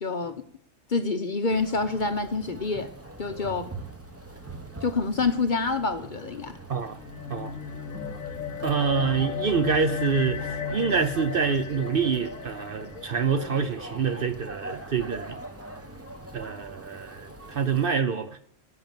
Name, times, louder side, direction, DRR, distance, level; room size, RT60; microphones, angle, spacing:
voice 1, 0.0-0.4 0.9-2.9 3.2-3.7 4.8-6.5, left 4 dB, 45° left, 0.9 m, -27 dB
sound 1, 1.5-17.9, right 1 dB, 10° right, 1.0 m, -42 dB
sound 2, 6.9-13.6, left 7 dB, 80° left, 1.1 m, -35 dB
voice 2, 8.6-15.4 16.3-18.4, right 6 dB, 50° right, 0.8 m, -26 dB
15.0 x 5.8 x 9.0 m
omnidirectional pair, 1.4 m